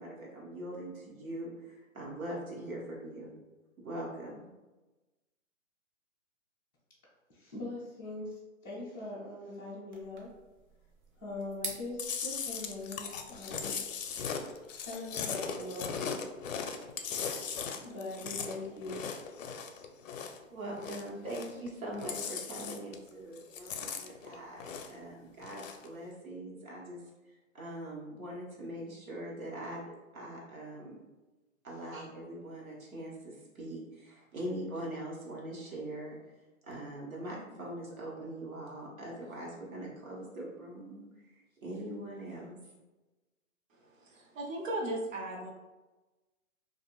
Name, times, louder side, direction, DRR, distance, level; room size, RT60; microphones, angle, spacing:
voice 1, 0.0-3.3 3.8-4.5 20.5-27.0 27.3-31.0 31.6-36.2 36.6-41.0 41.3-42.6, right 1 dB, 85° right, -4 dB, 1.2 m, -42 dB
voice 2, 7.3-10.3 11.2-13.8 14.8-16.2 17.8-19.0, left 2 dB, 15° left, -10 dB, 0.4 m, -41 dB
sound 1, 9.9-14.9, right 3 dB, 35° right, 0.6 m, -48 dB
Chewing mastication, 12.0-20.4 20.7-21.7 21.9-23.1 23.4-25.0 25.4-25.9, left 6 dB, 70° left, 0.5 m, -38 dB
voice 3, 43.7-45.5, right 1 dB, 70° right, -1 dB, 0.9 m, -37 dB
2.5 x 2.5 x 2.9 m, 1.1 s
hypercardioid pair, 140°, 41 cm